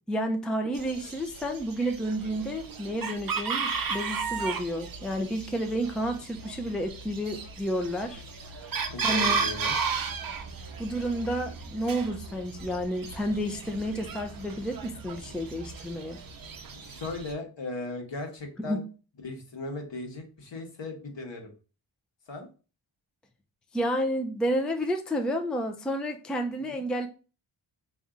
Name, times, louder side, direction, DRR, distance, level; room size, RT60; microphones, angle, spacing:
voice 1, 0.1-8.2 9.0-9.4 10.8-16.2 18.7-18.8 23.7-27.1, equal, ahead, 0.5 m, -30 dB
Chicken rooster, 0.7-17.3, right 5 dB, 45° right, 0.7 m, -35 dB
voice 2, 8.9-9.7 16.8-18.8 19.2-21.5 22.3-22.5 26.7-26.8, left 2 dB, 65° left, 1.3 m, -37 dB
3.5 x 2.7 x 3.6 m
cardioid pair, 65°, 48 cm